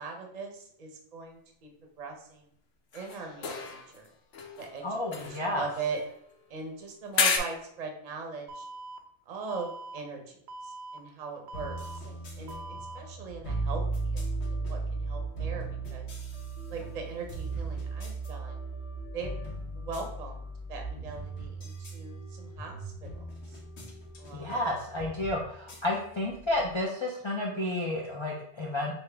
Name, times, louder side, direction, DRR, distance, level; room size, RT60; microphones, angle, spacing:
voice 1, 0.0-1.7 2.0-2.4 2.9-4.0 4.6-4.8 5.1-6.0 6.5-8.6 9.3-10.4 10.6-11.8 12.0-12.6 12.9-14.2 14.5-15.6 15.9-16.1 16.7-18.6 19.1-19.3 19.8-20.4 20.7-23.2 24.2-24.6, right 4 dB, 40° right, 2 dB, 0.7 m, -40 dB
sound 1, 2.9-4.1 4.3-6.4 7.1-7.4, left 5 dB, 90° left, 1.0 m, -32 dB
voice 2, 4.8-5.7 24.3-28.9, left 1 dB, 45° left, -2 dB, 0.4 m, -31 dB
Alarm, 8.5-9.0 9.5-10.0 10.5-11.0 11.5-12.0 12.5-13.0, right 2 dB, 70° right, 0.8 m, -42 dB
sound 2, 11.5-26.8, right 3 dB, 70° left, 1.1 m, -37 dB
5.4 x 2.2 x 3.3 m, 0.69 s
omnidirectional pair, 1.2 m